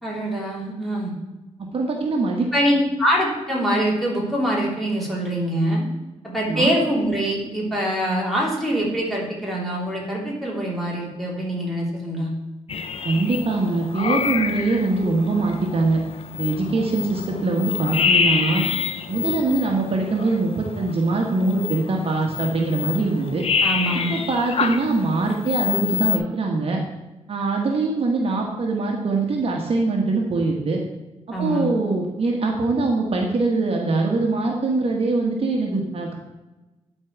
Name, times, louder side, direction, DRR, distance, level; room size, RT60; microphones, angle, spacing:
voice 1, 0.0-1.1 2.5-5.8 6.2-12.3 23.6-24.1 31.3-31.7, equal, ahead, -5 dB, 3.1 m, -24 dB
voice 2, 1.6-2.5 6.5-6.7 13.0-16.0 16.4-18.6 19.1-23.4 24.1-26.8 27.3-30.8 31.3-36.1, right 3 dB, 50° right, 0 dB, 1.3 m, -23 dB
sound 1, 12.7-26.2, left 5 dB, 55° left, 0.7 m, -27 dB
11.5 x 4.6 x 4.6 m, 1.1 s
cardioid pair, 105°, 12 cm